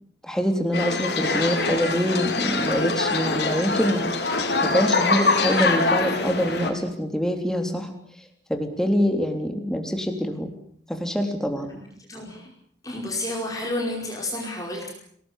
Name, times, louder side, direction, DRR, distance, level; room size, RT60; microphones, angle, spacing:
voice 1, 0.2-7.9 8.5-10.6 10.9-11.7, equal, 5° left, 4 dB, 3.5 m, -25 dB
sound 1, 0.7-6.7, left 3 dB, 65° left, 4.8 m, -24 dB
voice 2, 12.1-12.5 12.8-14.9, left 1 dB, 20° left, -1 dB, 5.3 m, -30 dB
27.5 x 19.0 x 8.4 m, 0.65 s
head